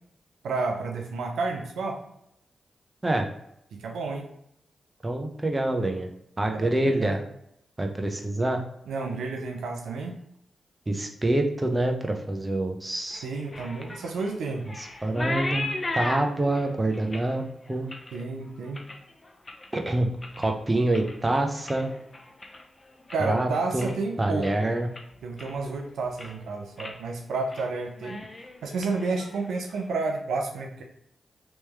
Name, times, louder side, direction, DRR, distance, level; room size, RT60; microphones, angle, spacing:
voice 1, 0.4-2.0 3.7-4.3 6.5-7.2 8.9-10.1 13.2-14.7 18.1-18.8 23.1-24.7 25.2-28.2 28.6-30.8, right 3 dB, 85° right, 2 dB, 0.5 m, -31 dB
voice 2, 5.0-6.1 6.4-7.2 7.8-8.6 10.9-13.2 14.8-15.7 15.9-17.9 19.7-20.1 20.4-21.9 23.2-23.9 24.2-24.9, right 1 dB, 25° right, 3 dB, 0.7 m, -26 dB
sound 1, 13.1-19.8 20.1-20.6 20.9-23.3 23.6-24.1 24.4-24.5 24.9-25.7 26.0-26.4 26.8-27.0 27.3-27.7 27.9-29.8, left 2 dB, 35° left, 0.6 m, -37 dB
3.1 x 3.0 x 3.4 m, 0.76 s
supercardioid pair, 45°, 0 cm